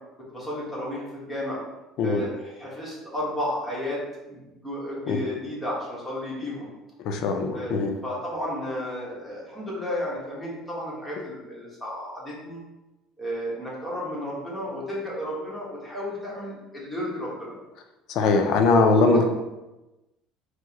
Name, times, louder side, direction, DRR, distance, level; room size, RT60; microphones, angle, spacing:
voice 1, 0.3-1.6 2.0-6.7 7.5-12.6 13.2-17.6 18.9-19.2, left 1 dB, 5° left, -6 dB, 1.3 m, -33 dB
voice 2, 7.0-7.9 18.1-19.2, left 3 dB, 65° left, 5 dB, 0.4 m, -21 dB
4.5 x 2.1 x 2.9 m, 1.0 s
cardioid pair, 125°, 0 cm